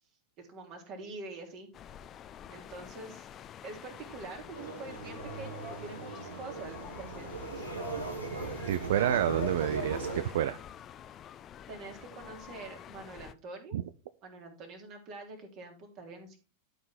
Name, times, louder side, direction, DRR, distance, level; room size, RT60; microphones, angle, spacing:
voice 1, 0.4-1.7 2.5-3.3 3.6-7.7 11.7-13.8 14.2-16.4, right 3 dB, 40° right, 3.3 m, -45 dB
sound 1, 1.7-13.3, left 9 dB, 30° left, 0.7 m, -48 dB
sound 2, 4.5-10.2, right 2 dB, 85° right, 2.9 m, -38 dB
voice 2, 8.7-10.6 13.7-13.8, right 11 dB, 55° right, 0.5 m, -29 dB
12.5 x 5.6 x 4.3 m
figure-of-eight pair, 90°, 0 cm